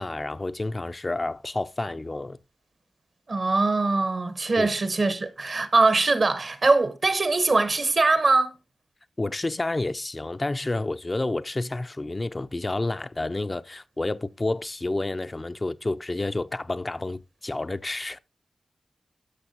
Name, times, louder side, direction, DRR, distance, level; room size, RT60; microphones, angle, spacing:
voice 1, 0.0-2.4 4.6-4.7 9.2-18.2, left 2 dB, 35° left, 0.4 m, -30 dB
voice 2, 3.3-8.5, right 3 dB, 60° right, 1.0 m, -22 dB
13.0 x 5.9 x 2.8 m
cardioid pair, 45°, 0 cm